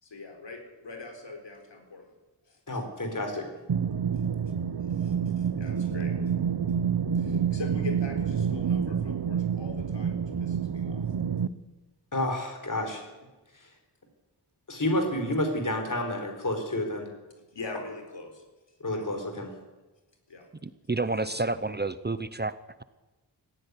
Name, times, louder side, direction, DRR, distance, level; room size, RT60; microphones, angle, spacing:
voice 1, 0.0-2.1 2.4-2.6 4.9-6.2 7.1-11.1 17.5-18.4 18.9-19.1 20.3-20.5 21.2-21.4, left 3 dB, 80° left, 4 dB, 4.5 m, -42 dB
voice 2, 2.7-3.5 12.1-13.0 13.6-13.7 14.7-17.1 18.8-19.5, left 1 dB, 45° left, 5 dB, 4.7 m, -30 dB
sound 1, 3.7-11.5, right 7 dB, 65° right, 0.9 m, -28 dB
voice 3, 20.6-22.5, right 2 dB, 25° right, 14 dB, 0.8 m, -30 dB
17.5 x 15.0 x 10.0 m, 1.1 s
wide cardioid pair, 85°, 42 cm